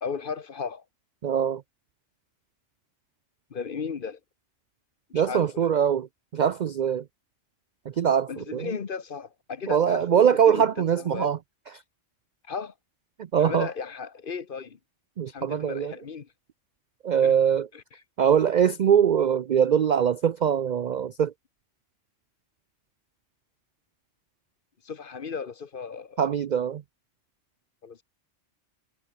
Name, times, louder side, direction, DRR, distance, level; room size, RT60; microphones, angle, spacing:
voice 1, 0.0-0.8 3.5-4.2 5.1-5.7 8.3-10.2 10.5-10.7 11.0-11.3 12.5-12.7 13.4-14.8 15.3-16.3 17.2-17.3 17.7-17.8 24.8-26.2 27.8-28.0, left 6 dB, 45° left, 1.1 m, -35 dB
voice 2, 1.2-1.6 5.1-6.1 6.3-7.1 7.9-8.7 9.7-11.4 13.2-13.7 15.2-15.9 17.0-17.7 18.2-21.3 26.2-26.8, right 8 dB, 60° right, 0.5 m, -22 dB
omnidirectional pair, 1.3 m